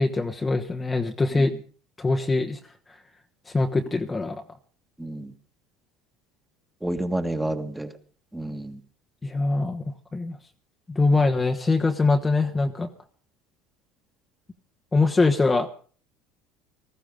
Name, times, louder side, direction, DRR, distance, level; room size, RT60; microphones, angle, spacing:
voice 1, 0.0-1.5 2.0-2.6 3.5-4.4 9.2-9.8 10.1-10.4 10.9-12.9 14.9-15.7, left 3 dB, 20° left, 4 dB, 1.2 m, -23 dB
voice 2, 5.0-5.3 6.8-7.9 8.3-8.8, right 1 dB, 5° right, 6 dB, 1.8 m, -29 dB
19.5 x 14.0 x 3.7 m, 0.42 s
hypercardioid pair, 75°, 0 cm